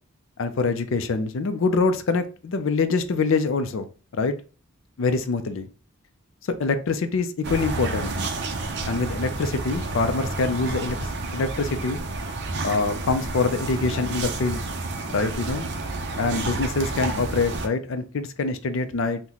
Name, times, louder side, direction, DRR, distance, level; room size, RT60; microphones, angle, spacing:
voice 1, 0.4-4.4 5.0-5.7 6.6-8.1 8.9-11.0 11.3-12.0 12.6-14.6 15.1-15.7 16.2-19.2, left 4 dB, 60° left, 0.4 m, -25 dB
sound 1, 7.4-17.7, right 3 dB, 50° right, 0.5 m, -30 dB
3.8 x 2.1 x 2.9 m
head